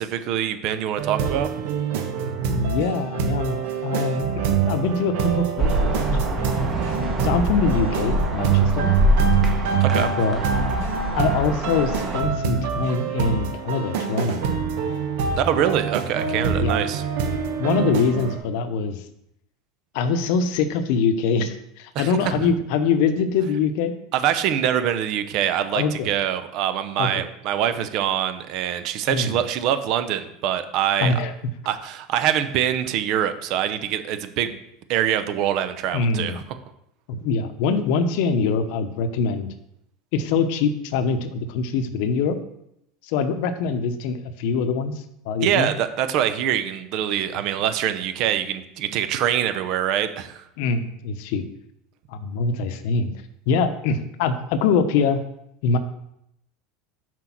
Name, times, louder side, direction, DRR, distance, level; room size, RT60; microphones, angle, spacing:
voice 1, 0.0-1.5 9.8-10.2 15.4-17.0 21.9-22.5 24.1-31.2 31.7-34.6 34.9-36.6 45.4-50.4, right 10 dB, 55° right, 11 dB, 0.7 m, -24 dB
sound 1, 1.0-18.4, right 6 dB, 75° right, 1.1 m, -25 dB
voice 2, 2.5-6.4 6.8-7.0 7.2-8.9 10.2-10.4 11.2-14.4 15.3-15.4 16.6-16.8 17.6-19.0 19.9-23.9 25.7-26.1 27.0-27.2 29.1-29.4 31.0-31.3 35.9-36.4 37.1-39.5 40.1-42.4 43.0-45.7 50.6-51.5 52.1-53.1 53.5-55.2 55.6-55.8, left 5 dB, 70° left, 10 dB, 0.8 m, -24 dB
sound 2, 5.6-12.2, equal, 25° right, 1.3 m, -25 dB
6.1 x 4.5 x 5.9 m, 0.78 s
supercardioid pair, 120°, 0 cm